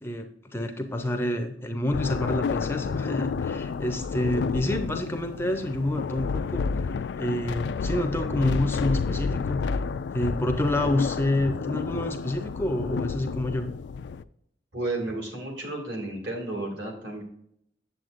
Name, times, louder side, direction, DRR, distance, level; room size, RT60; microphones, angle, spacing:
voice 1, 0.0-9.8 10.1-13.7, left 1 dB, 15° left, 6 dB, 0.5 m, -28 dB
sound 1, 1.9-14.2, left 5 dB, 65° left, 0.3 m, -30 dB
voice 2, 14.7-17.2, right 2 dB, 65° right, 0 dB, 2.4 m, -32 dB
7.8 x 7.8 x 2.5 m, 0.72 s
head